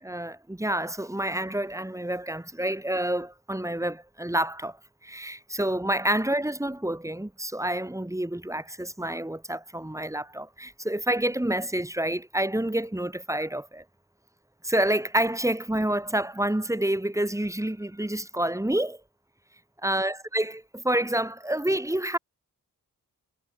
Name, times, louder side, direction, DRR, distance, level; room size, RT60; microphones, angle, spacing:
voice 1, 0.0-4.8 5.0-13.8 14.6-19.0 19.8-22.2, right 1 dB, 10° right, 1.5 m, -28 dB
cardioid pair, 60°, 36 cm